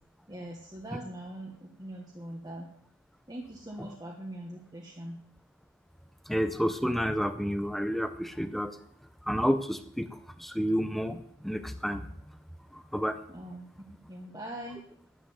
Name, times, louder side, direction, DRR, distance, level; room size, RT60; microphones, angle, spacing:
voice 1, 0.3-2.7 3.3-5.2 13.3-14.8, right 1 dB, 20° right, 0 dB, 1.2 m, -42 dB
voice 2, 6.3-8.7 9.3-10.1 10.4-12.1 12.7-13.2, equal, ahead, 10 dB, 0.6 m, -30 dB
10.0 x 7.7 x 9.4 m, 0.69 s
head